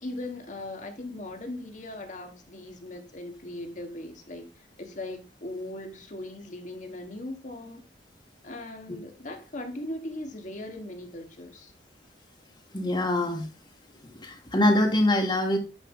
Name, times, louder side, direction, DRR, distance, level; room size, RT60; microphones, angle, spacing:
voice 1, 0.0-7.8 8.4-11.7, left 1 dB, 45° left, 1.3 m, -39 dB
voice 2, 12.7-13.5 14.1-15.6, left 1 dB, 25° left, 1.6 m, -24 dB
9.2 x 5.0 x 3.6 m
head